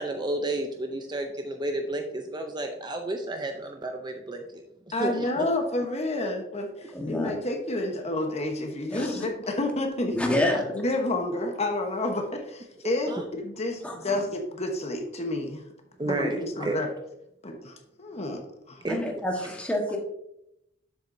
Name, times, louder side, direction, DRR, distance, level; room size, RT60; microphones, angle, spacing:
voice 1, 0.0-4.4 5.0-5.3 13.1-13.2 16.0-16.8 18.8-19.0, right 2 dB, 20° right, 5 dB, 0.6 m, -31 dB
voice 2, 4.9-10.2 10.7-15.6 16.1-16.9 17.4-18.4 18.7-18.8, left 2 dB, 35° left, 3 dB, 1.1 m, -30 dB
voice 3, 6.9-7.3 8.9-9.2 10.1-10.7 13.8-14.2 18.9-20.0, left 1 dB, 5° left, 0 dB, 1.3 m, -28 dB
7.3 x 7.2 x 2.7 m, 0.81 s
head